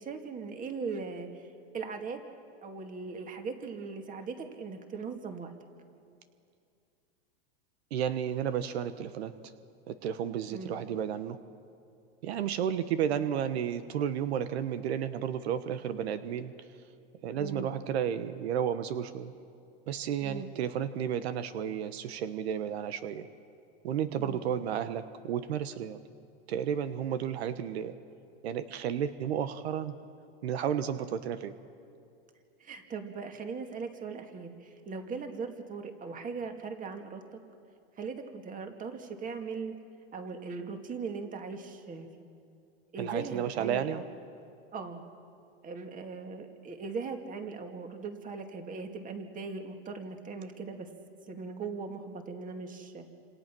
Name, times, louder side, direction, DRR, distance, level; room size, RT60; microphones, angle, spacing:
voice 1, 0.0-2.2 2.6-5.5 10.5-10.7 17.4-17.7 20.2-20.5 24.2-24.4 32.6-37.4 38.0-39.7 40.1-42.3 42.9-44.0 44.7-45.0 45.6-50.9 51.3-53.1, right 4 dB, 25° right, 5 dB, 2.4 m, -39 dB
voice 2, 7.9-9.3 9.9-11.4 12.2-16.5 17.2-19.3 19.9-23.3 23.8-26.0 26.5-27.9 28.4-30.0 30.4-31.5 43.0-44.0, right 9 dB, 85° right, 11 dB, 1.2 m, -32 dB
29.0 x 27.0 x 6.2 m, 2.5 s
supercardioid pair, 130°, 31 cm